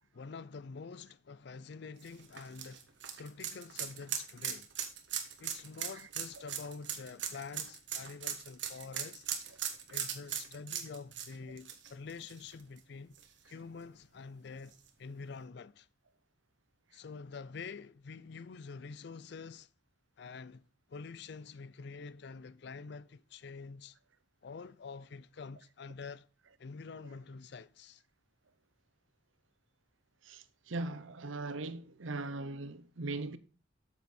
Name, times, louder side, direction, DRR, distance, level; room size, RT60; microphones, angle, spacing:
voice 1, 0.1-2.9 3.2-4.7 5.4-9.3 9.9-13.1 13.5-15.9 16.9-19.7 20.2-24.0 24.4-26.3 26.6-28.0, left 4 dB, 60° left, 0.4 m, -47 dB
sound 1, 2.0-12.8 13.2-13.3 14.7-14.8, right 9 dB, 65° right, 1.4 m, -39 dB
voice 2, 30.2-33.4, right 2 dB, 85° right, 0.8 m, -39 dB
8.1 x 7.1 x 4.2 m
head